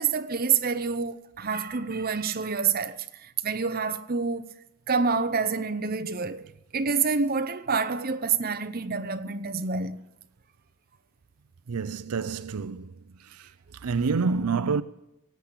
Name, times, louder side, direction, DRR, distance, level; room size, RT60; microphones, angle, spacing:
voice 1, 0.0-4.4 4.9-6.5 6.7-10.0, right 5 dB, 40° right, 0.8 m, -27 dB
voice 2, 11.7-12.9 13.2-13.5 13.8-14.8, right 4 dB, 80° right, 0.5 m, -27 dB
17.5 x 8.2 x 8.7 m
head